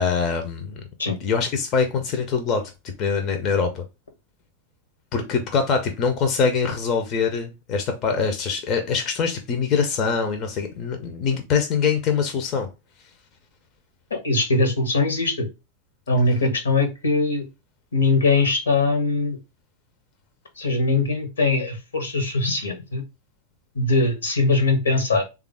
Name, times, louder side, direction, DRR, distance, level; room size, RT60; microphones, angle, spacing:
voice 1, 0.0-0.8 1.2-2.7 3.0-3.8 5.1-12.7, left 5 dB, 35° left, 0.6 m, -23 dB
voice 2, 14.1-15.5 16.1-17.4 17.9-19.4 20.6-23.0 23.7-25.2, left 3 dB, 70° left, 0.9 m, -21 dB
3.4 x 2.4 x 3.4 m
figure-of-eight pair, 90°, 0 cm